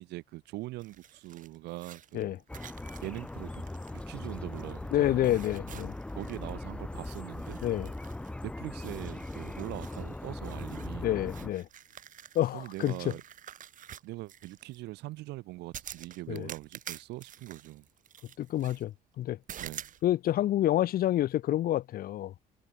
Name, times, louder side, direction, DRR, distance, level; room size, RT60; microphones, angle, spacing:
voice 1, 0.0-2.4 3.0-3.6 3.9-5.4 6.1-7.6 8.4-11.1 12.5-13.2 14.0-17.8 19.6-19.9, right 19 dB, 85° right, 1.3 m, -42 dB
sound 1, 0.8-4.9 5.2-6.6 6.9-8.4 8.8-14.8 15.7-18.8 19.5-20.0, right 10 dB, 50° right, 1.6 m, -49 dB
sound 2, 2.5-11.5, left 2 dB, 5° left, 0.4 m, -40 dB
voice 2, 4.9-5.9 7.6-7.9 11.0-11.7 12.3-13.0 16.3-16.5 18.4-19.4 20.0-22.3, left 13 dB, 60° left, 1.0 m, -28 dB
cardioid pair, 110°, 17 cm